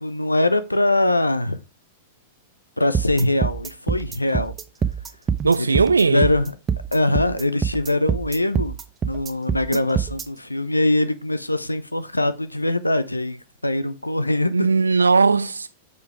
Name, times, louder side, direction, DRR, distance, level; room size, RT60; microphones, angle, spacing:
voice 1, 0.0-1.6 2.8-4.5 5.6-5.8 6.1-6.5 6.9-8.7 9.0-14.7, left 2 dB, 85° left, 0.6 m, -22 dB
sound 1, 2.9-10.2, right 7 dB, 20° right, 0.6 m, -25 dB
voice 2, 5.4-6.3 14.5-15.7, right 4 dB, 75° right, 0.6 m, -18 dB
5.3 x 4.7 x 4.7 m
figure-of-eight pair, 95°, 0 cm